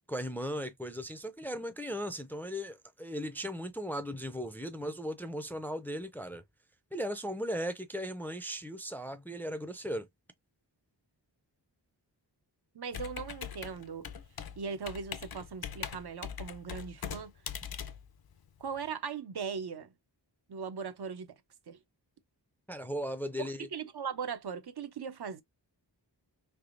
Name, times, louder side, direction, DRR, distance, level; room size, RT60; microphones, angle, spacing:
voice 1, 0.1-6.4 6.9-10.1 22.7-23.7, equal, 5° left, 0.4 m, -37 dB
voice 2, 12.7-14.1 14.6-17.3 18.6-19.9 20.5-21.3 21.7-21.8 23.7-25.4, right 6 dB, 65° right, 0.6 m, -39 dB
Computer keyboard, 12.9-18.9, left 8 dB, 60° left, 0.6 m, -42 dB
3.4 x 3.0 x 2.4 m
wide cardioid pair, 80°, 43 cm